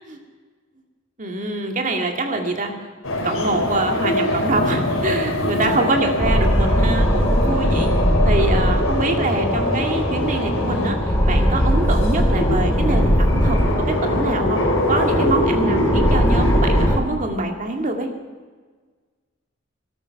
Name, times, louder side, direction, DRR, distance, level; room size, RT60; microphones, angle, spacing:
voice 1, 1.2-2.7 3.2-7.9 8.2-13.6 13.9-14.6 14.9-18.1, right 2 dB, 40° right, 3 dB, 2.1 m, -24 dB
sound 1, 3.0-16.9, left 1 dB, 85° left, 3.1 m, -24 dB
sound 2, 6.2-17.0, equal, 10° left, 2.2 m, -20 dB
19.5 x 12.5 x 5.8 m, 1.5 s
head